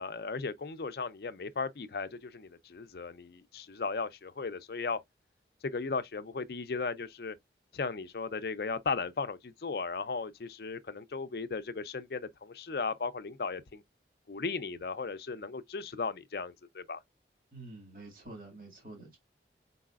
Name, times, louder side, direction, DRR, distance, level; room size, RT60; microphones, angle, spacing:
voice 1, 0.0-5.0 5.6-7.4 7.7-13.8 14.3-17.0, left 4 dB, 60° left, 0.5 m, -36 dB
voice 2, 17.5-19.2, right 2 dB, 50° right, 2.0 m, -48 dB
4.7 x 4.0 x 2.4 m
head